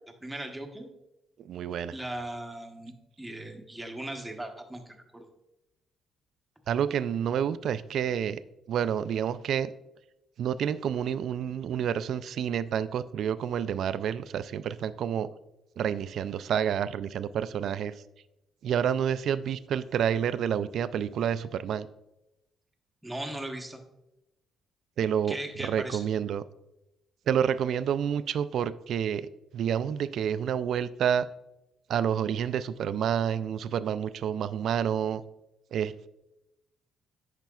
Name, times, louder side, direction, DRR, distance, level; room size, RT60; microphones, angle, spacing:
voice 1, 0.2-0.9 1.9-5.2 23.0-23.8 25.3-26.0, right 1 dB, 5° right, 3 dB, 1.0 m, -38 dB
voice 2, 1.4-2.0 6.7-8.4 8.7-9.7 10.4-15.3 15.8-17.9 18.6-21.9 25.0-26.4 27.3-31.3 31.9-35.2 35.7-36.1, right 8 dB, 65° right, 15 dB, 0.3 m, -29 dB
9.0 x 5.8 x 2.3 m, 0.90 s
cardioid pair, 100°, 0 cm